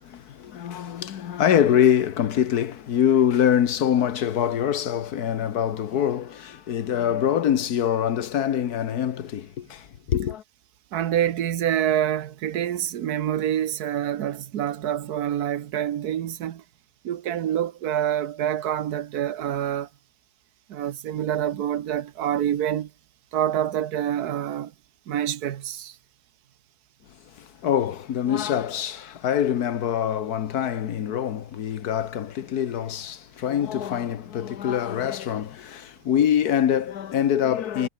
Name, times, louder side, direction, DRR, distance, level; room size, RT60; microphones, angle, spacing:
voice 1, 0.0-10.4 27.3-37.9, left 9 dB, 80° left, 1.6 m, -24 dB
voice 2, 10.9-16.6 17.0-19.9 20.7-22.9 23.3-24.7 25.1-26.0, right 10 dB, 80° right, 1.5 m, -26 dB
omnidirectional pair, 1.6 m